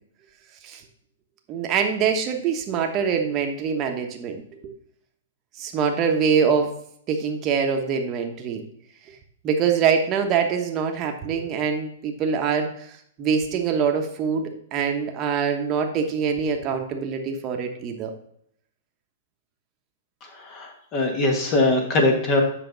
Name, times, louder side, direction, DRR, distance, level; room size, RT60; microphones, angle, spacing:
voice 1, 1.5-4.7 5.6-6.7 7.1-8.6 9.4-12.9 13.2-18.1, right 6 dB, 25° right, 3 dB, 1.1 m, -24 dB
voice 2, 20.3-22.4, left 2 dB, 30° left, 3 dB, 1.5 m, -22 dB
8.2 x 6.0 x 4.0 m, 0.65 s
hypercardioid pair, 150°, 0 cm